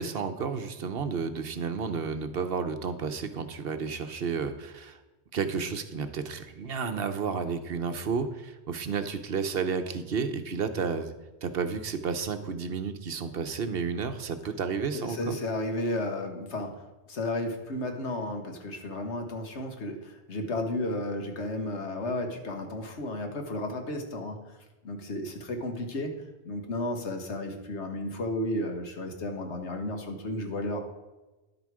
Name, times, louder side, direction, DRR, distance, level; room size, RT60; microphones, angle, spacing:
voice 1, 0.0-5.0 5.3-11.1 11.4-15.4, right 5 dB, 65° right, 9 dB, 1.0 m, -31 dB
voice 2, 14.9-16.7 17.1-24.4 24.8-26.1 26.4-30.8, left 1 dB, 85° left, 4 dB, 1.7 m, -33 dB
10.5 x 8.0 x 4.8 m, 1.1 s
omnidirectional pair, 1.1 m